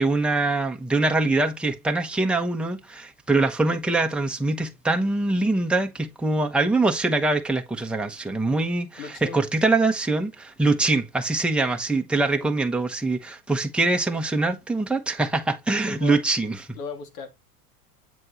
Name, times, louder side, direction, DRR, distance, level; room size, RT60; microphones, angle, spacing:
voice 1, 0.0-16.6, right 2 dB, ahead, 1.0 m, -23 dB
voice 2, 9.0-9.4 12.3-12.5 15.8-16.2 16.7-17.3, left 5 dB, 70° left, 2.4 m, -36 dB
8.3 x 3.5 x 4.3 m
hypercardioid pair, 95°, 46 cm